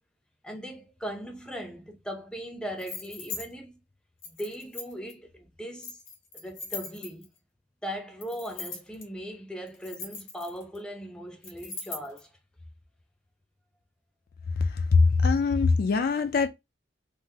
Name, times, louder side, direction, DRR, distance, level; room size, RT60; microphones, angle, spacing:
voice 1, 0.4-3.8 4.3-6.0 6.3-7.3 7.8-12.3, equal, 5° left, 0.6 m, -39 dB
sound 1, 2.8-3.5 4.2-5.1 5.8-7.4 8.2-9.0 9.7-10.8 11.4-12.2, left 4 dB, 80° left, 1.0 m, -40 dB
voice 2, 14.6-16.5, left 4 dB, 50° left, 0.3 m, -22 dB
3.6 x 2.0 x 2.7 m
head